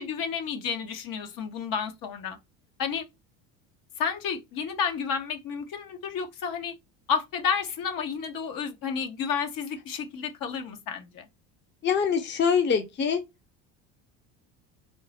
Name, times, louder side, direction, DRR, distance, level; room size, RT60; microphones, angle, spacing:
voice 1, 0.0-2.4 2.8-3.1 4.0-6.7 7.1-11.3, left 6 dB, 60° left, 1.0 m, -31 dB
voice 2, 11.8-13.2, left 6 dB, 30° left, 0.7 m, -24 dB
3.7 x 2.0 x 4.0 m
supercardioid pair, 105°, 37 cm